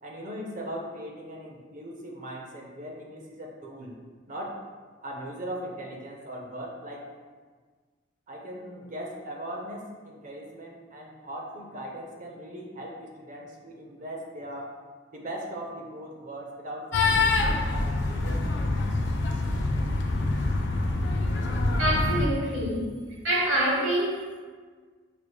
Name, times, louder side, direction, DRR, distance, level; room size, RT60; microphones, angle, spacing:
voice 1, 0.0-4.0 4.3-4.6 5.0-7.1 8.3-14.7 15.1-18.5, right 1 dB, 40° right, -1 dB, 0.5 m, -39 dB
sound 1, 16.9-22.3, left 2 dB, 60° left, 0.4 m, -25 dB
voice 2, 21.8-22.9 23.2-24.4, right 1 dB, 65° right, -5 dB, 1.2 m, -26 dB
4.8 x 3.1 x 2.2 m, 1.5 s
head